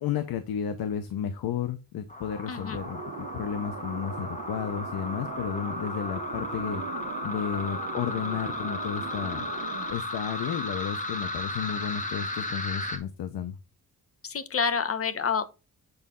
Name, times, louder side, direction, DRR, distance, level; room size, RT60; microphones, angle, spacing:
voice 1, 0.0-6.8 7.2-9.4 9.9-13.6, left 8 dB, 90° left, 0.8 m, -32 dB
sound 1, 2.1-13.0, left 2 dB, 20° left, 1.5 m, -35 dB
voice 2, 2.5-2.8 14.2-15.5, left 6 dB, 40° left, 0.9 m, -28 dB
sound 2, 2.7-9.9, right 7 dB, 55° right, 1.1 m, -40 dB
8.1 x 4.0 x 3.7 m
cardioid pair, 105°, 35 cm